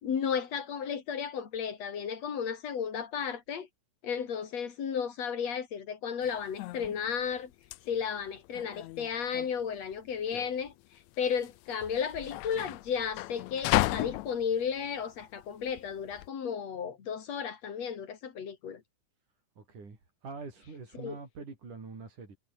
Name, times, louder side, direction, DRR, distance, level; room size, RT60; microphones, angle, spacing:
voice 1, 0.0-3.7 4.0-7.5 7.9-10.7 11.2-18.8 21.0-21.2, left 7 dB, 50° left, 3.4 m, -34 dB
sound 1, 6.2-16.3, left 18 dB, 85° left, 1.6 m, -35 dB
voice 2, 19.6-22.4, right 4 dB, 60° right, 7.5 m, -45 dB
omnidirectional pair, 4.0 m